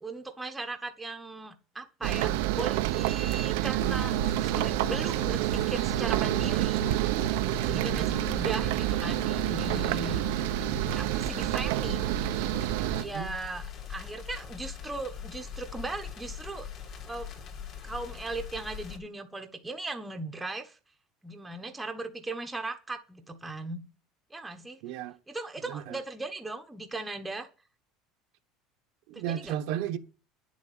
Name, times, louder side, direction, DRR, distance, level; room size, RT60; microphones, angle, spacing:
voice 1, 0.0-4.2 4.4-6.8 7.6-10.2 10.6-12.2 13.0-16.7 17.0-17.3 17.8-20.8 21.2-23.8 24.3-24.8 25.3-27.5 29.1-29.5, right 2 dB, 5° right, 1.1 m, -38 dB
sound 1, 2.0-13.0, right 15 dB, 80° right, 0.7 m, -28 dB
sound 2, 3.8-19.0, left 8 dB, 45° left, 2.8 m, -42 dB
voice 2, 7.7-8.2 13.0-13.3 24.8-25.2 25.7-26.0 29.1-30.0, right 10 dB, 65° right, 1.1 m, -34 dB
9.7 x 7.3 x 8.2 m
cardioid pair, 170°, 0 cm